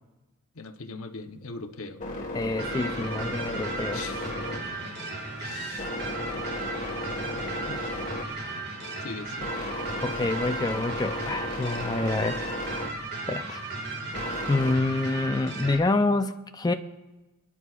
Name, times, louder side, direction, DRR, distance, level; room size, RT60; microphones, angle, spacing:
voice 1, 0.5-2.0 3.9-5.9 7.7-8.2 8.8-9.6, left 3 dB, 70° left, 7 dB, 0.9 m, -42 dB
sound 1, 1.1-14.7, left 1 dB, 35° left, 1.7 m, -36 dB
voice 2, 2.3-4.0 10.0-12.4 13.3-13.6 14.5-16.7, left 2 dB, 20° left, 7 dB, 0.4 m, -27 dB
sound 2, 2.6-15.8, right 3 dB, 50° right, 2.0 m, -35 dB
27.5 x 10.0 x 2.4 m, 1.1 s
head